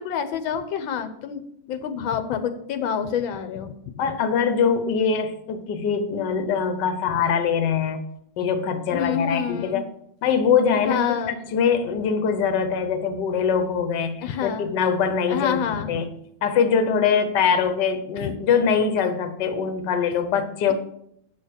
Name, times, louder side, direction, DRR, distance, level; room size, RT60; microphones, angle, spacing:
voice 1, 0.0-3.9 8.9-9.8 10.8-11.4 14.2-14.7 15.3-16.0 18.2-18.3, left 8 dB, 90° left, 9 dB, 1.5 m, -27 dB
voice 2, 4.0-8.0 8.4-9.8 10.2-11.0 11.5-16.1 16.4-20.7, left 6 dB, 65° left, 9 dB, 1.5 m, -23 dB
9.5 x 6.5 x 5.1 m, 0.73 s
omnidirectional pair, 2.1 m